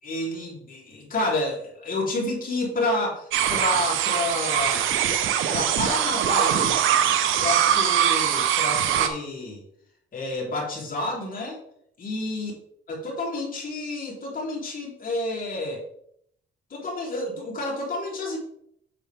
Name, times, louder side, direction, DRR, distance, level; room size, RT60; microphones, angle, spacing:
voice 1, 0.0-4.9 5.5-6.8 7.4-9.6 10.1-11.6 12.0-12.5 12.9-15.8 16.7-18.4, left 2 dB, 45° left, -2 dB, 3.3 m, -29 dB
sound 1, 3.3-9.1, right 9 dB, 85° right, 0.9 m, -22 dB
8.2 x 6.7 x 3.4 m, 0.70 s
cardioid pair, 90°, 20 cm